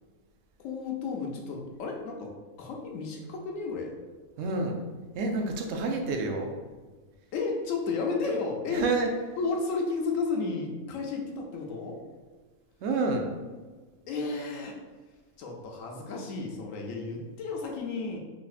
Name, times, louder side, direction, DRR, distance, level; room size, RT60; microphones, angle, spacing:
voice 1, 0.6-3.9 7.3-8.9 9.4-12.0 14.1-14.8 15.4-18.2, left 4 dB, 70° left, 1 dB, 0.9 m, -32 dB
voice 2, 4.4-4.8 5.1-6.5 8.7-9.1 12.8-13.3, right 3 dB, 70° right, 2 dB, 0.9 m, -28 dB
4.0 x 2.7 x 2.4 m, 1.4 s
omnidirectional pair, 1.5 m